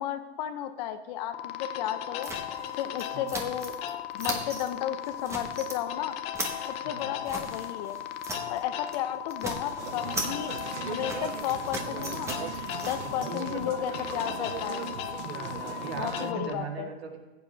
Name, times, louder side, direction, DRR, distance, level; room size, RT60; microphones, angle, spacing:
voice 1, 0.0-2.3 2.8-3.7 4.1-6.2 6.7-8.0 8.5-10.6 10.9-12.3 12.8-14.9 16.0-16.9, left 11 dB, 40° left, 10 dB, 0.9 m, -33 dB
sound 1, 1.3-16.5, left 11 dB, 20° left, 0.4 m, -37 dB
sound 2, 2.2-3.9 4.2-4.7 5.0-5.8 6.1-8.6 8.9-9.0 9.3-13.3, right 1 dB, 10° right, 1.2 m, -38 dB
voice 2, 6.8-7.1 13.0-13.7 15.2-17.2, right 4 dB, 65° right, 3 dB, 2.2 m, -39 dB
sound 3, 9.8-16.3, right 11 dB, 85° right, 0.5 m, -39 dB
15.0 x 8.9 x 3.4 m, 1.2 s
hypercardioid pair, 145°, 33 cm